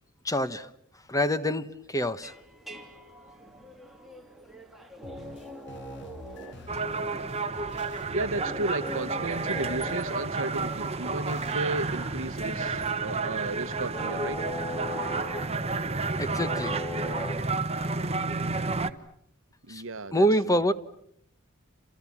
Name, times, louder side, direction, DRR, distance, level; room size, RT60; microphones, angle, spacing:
voice 1, 0.2-0.7 1.1-2.3 16.2-16.7 19.7-19.8 20.1-20.7, equal, 15° left, 1.1 m, -26 dB
sound 1, 2.2-17.5, equal, ahead, 3.1 m, -41 dB
sound 2, 5.0-13.0, left 2 dB, 60° left, 1.5 m, -48 dB
sound 3, 6.7-18.9, right 3 dB, 30° right, 1.2 m, -31 dB
voice 2, 8.1-14.4 19.6-20.6, right 2 dB, 70° right, 1.1 m, -34 dB
29.0 x 28.0 x 7.3 m
head